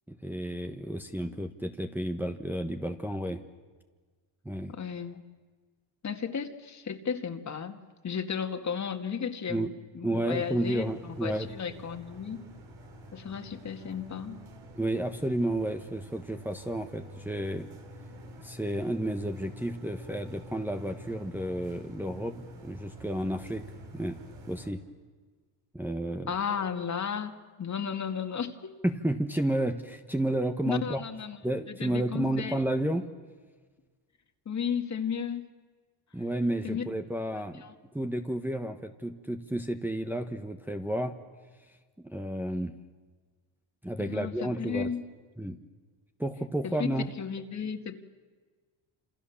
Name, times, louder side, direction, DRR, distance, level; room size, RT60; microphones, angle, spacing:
voice 1, 0.1-3.4 4.4-4.7 9.5-9.7 10.0-11.5 14.8-17.7 18.4-23.6 23.9-24.2 24.5-24.8 25.7-26.3 28.8-31.0 31.4-33.0 36.1-37.6 37.9-41.2 42.0-42.7 43.8-44.9 45.4-45.6 46.2-47.1, right 1 dB, 5° right, 4 dB, 1.3 m, -31 dB
voice 2, 4.7-5.2 6.0-12.4 13.1-14.4 26.3-27.3 27.6-28.8 30.6-31.4 31.7-32.6 34.5-35.4 36.6-36.8 37.6-37.7 44.0-45.0 46.6-46.9 47.2-48.0, left 7 dB, 40° left, 7 dB, 2.1 m, -34 dB
sound 1, 10.3-24.7, equal, 80° right, 5.2 m, -48 dB
28.0 x 27.5 x 7.2 m, 1.4 s
cardioid pair, 115°, 44 cm